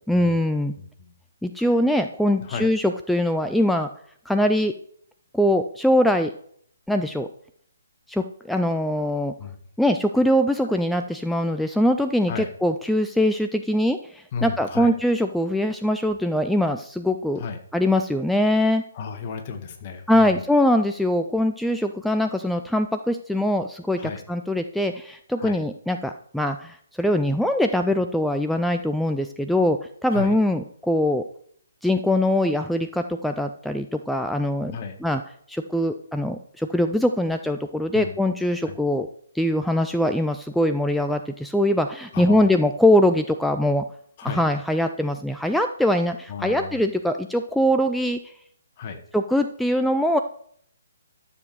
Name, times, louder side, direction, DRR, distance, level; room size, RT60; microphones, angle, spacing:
voice 1, 0.1-0.7 1.4-3.9 4.3-4.7 5.3-6.3 6.9-7.3 8.1-9.3 9.8-17.4 17.7-18.8 20.1-31.2 31.8-34.7 35.0-35.2 35.5-39.1 39.3-43.8 44.2-48.3 49.1-50.2, left 1 dB, ahead, 6 dB, 0.4 m, -22 dB
voice 2, 0.8-1.1 1.6-1.7 2.4-2.7 9.4-9.6 12.3-12.5 14.3-14.9 17.4-17.6 18.9-20.4 24.0-24.2 25.4-25.6 30.1-30.3 34.7-35.0 37.9-38.1 38.7-38.8 42.1-42.5 44.2-44.4 46.3-46.8 48.8-49.0, left 5 dB, 35° left, 5 dB, 1.7 m, -33 dB
12.5 x 7.2 x 4.6 m, 0.64 s
figure-of-eight pair, 135°, 0 cm